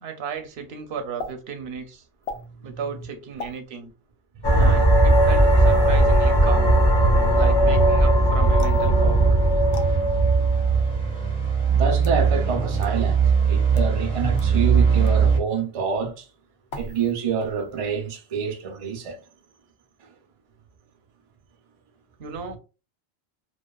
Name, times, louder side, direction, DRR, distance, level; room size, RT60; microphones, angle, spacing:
voice 1, 0.0-2.0 2.6-3.9 4.5-6.7 7.3-9.3 22.2-22.6, right 6 dB, 90° right, 0.9 m, -34 dB
sound 1, 1.2-1.3 2.2-2.4 3.4-3.6 4.6-4.7 5.6-5.9 8.6-8.9 9.7-9.9 10.8-10.9 11.8-12.2 12.8-12.9 13.6-13.9 14.4-14.5 15.0-15.2 16.7-17.1 17.4-17.8, left 3 dB, 85° left, 0.9 m, -37 dB
voice 2, 2.3-2.8 4.3-4.7 7.1-7.4 11.6-16.3 16.8-19.2 20.0-20.1, right 6 dB, 45° right, 0.5 m, -28 dB
sound 2, 4.4-11.1, right 1 dB, 30° left, 0.6 m, -18 dB
sound 3, 6.6-15.4, right 6 dB, 15° right, 1.0 m, -23 dB
2.9 x 2.3 x 2.3 m
omnidirectional pair, 1.0 m